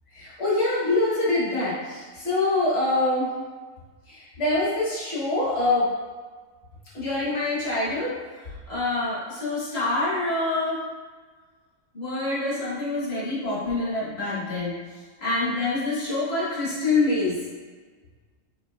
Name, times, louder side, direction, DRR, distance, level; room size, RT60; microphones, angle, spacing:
voice 1, 0.1-3.3 4.1-5.9 6.9-8.1 8.7-10.8 11.9-14.8 15.2-17.4, left 2 dB, 50° left, -8 dB, 1.4 m, -25 dB
5.0 x 2.7 x 2.3 m, 1.5 s
omnidirectional pair, 1.4 m